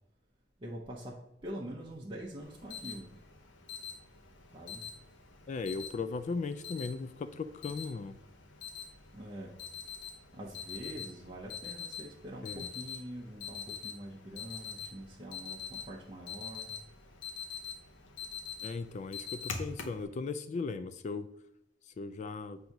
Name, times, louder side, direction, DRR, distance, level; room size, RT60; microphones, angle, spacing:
voice 1, 0.6-3.1 4.5-4.8 9.1-9.5 10.3-16.7, equal, 30° right, -4 dB, 0.7 m, -44 dB
Alarm, 2.4-20.0, left 6 dB, 85° left, 0.8 m, -45 dB
voice 2, 5.5-8.2 12.4-12.7 18.6-21.3 21.8-22.6, left 4 dB, 40° left, 11 dB, 0.3 m, -37 dB
7.7 x 2.7 x 5.8 m, 0.83 s
head